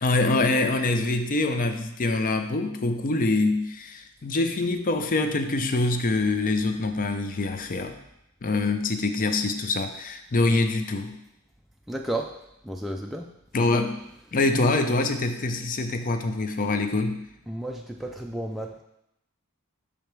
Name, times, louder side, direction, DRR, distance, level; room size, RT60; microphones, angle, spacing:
voice 1, 0.0-8.0 8.4-11.2 13.5-14.0 14.3-17.3, left 2 dB, 40° left, 7 dB, 0.6 m, -25 dB
voice 2, 11.9-12.4 12.6-13.3 13.6-13.7 17.5-18.8, right 1 dB, ahead, 0 dB, 0.3 m, -32 dB
6.7 x 5.2 x 4.6 m, 0.83 s
head